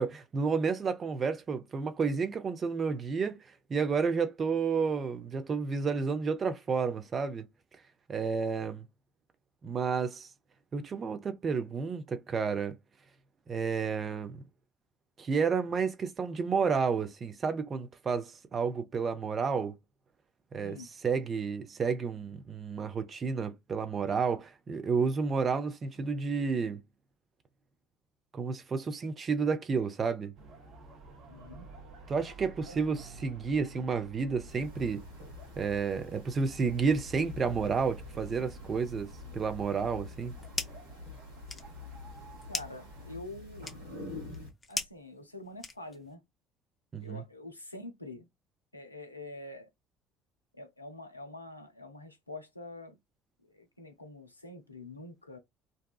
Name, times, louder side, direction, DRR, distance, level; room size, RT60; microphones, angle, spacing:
voice 1, 0.0-3.4 3.7-7.4 8.1-8.9 9.6-10.3 10.7-12.8 13.5-14.4 15.2-19.8 20.5-26.8 28.3-30.3 32.1-35.0 35.6-39.1 39.3-40.4 46.9-47.2, right 5 dB, 35° right, 0.5 m, -31 dB
voice 2, 20.6-20.9 31.3-31.7 32.7-32.8 42.5-43.7 44.7-46.2 47.0-48.3 48.7-49.7 50.5-53.0 53.4-55.4, left 2 dB, 90° left, 0.4 m, -46 dB
sound 1, 30.4-43.2, right 2 dB, 50° right, 0.9 m, -51 dB
sound 2, 34.5-44.5, left 4 dB, 75° right, 1.3 m, -47 dB
sound 3, 40.1-40.9 41.2-46.1, left 3 dB, 20° left, 0.5 m, -40 dB
2.7 x 2.2 x 2.2 m
figure-of-eight pair, 60°, 0 cm